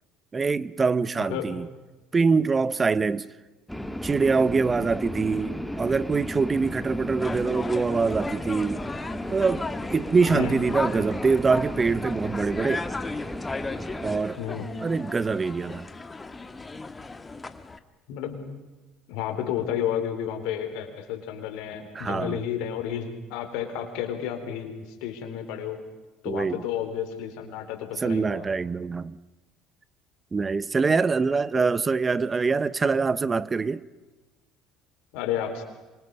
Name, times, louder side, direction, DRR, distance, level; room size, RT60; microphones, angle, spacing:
voice 1, 0.3-1.7 2.1-3.3 4.0-8.8 9.3-12.9 14.0-14.4 14.8-15.9 21.9-22.4 26.3-26.7 28.0-29.2 30.3-33.8, right 4 dB, 30° right, 0.7 m, -24 dB
voice 2, 1.2-1.5 10.3-10.6 14.4-14.7 18.1-18.4 19.1-24.7 25.0-25.8 26.2-28.5 31.5-31.6 35.1-35.6, left 9 dB, 75° left, 3.7 m, -31 dB
sound 1, 3.7-14.2, left 1 dB, 5° left, 1.5 m, -35 dB
sound 2, 7.2-17.8, left 3 dB, 20° left, 1.5 m, -36 dB
26.5 x 25.0 x 5.4 m
supercardioid pair, 80°, 0 cm